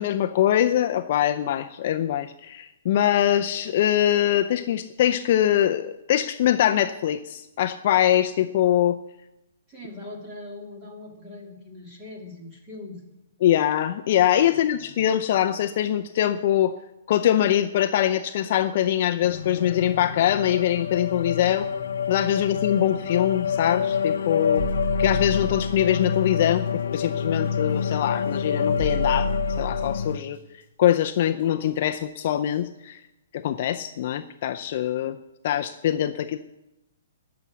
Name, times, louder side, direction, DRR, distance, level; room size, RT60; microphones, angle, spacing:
voice 1, 0.0-9.0 13.4-16.8 17.1-21.7 22.1-24.6 25.0-29.3 29.6-30.4 30.8-33.0 33.3-35.2 35.4-36.4, left 11 dB, 35° left, 8 dB, 0.5 m, -23 dB
voice 2, 9.7-13.1 14.4-14.8, left 2 dB, 10° right, -1 dB, 2.5 m, -41 dB
sound 1, 19.2-30.2, left 7 dB, 70° left, 0.8 m, -27 dB
sound 2, 24.5-25.8 27.7-27.8 28.8-30.1 31.9-32.0 32.5-32.6, equal, 50° right, 5.5 m, -30 dB
20.0 x 6.9 x 7.4 m, 0.96 s
hypercardioid pair, 180°, 0 cm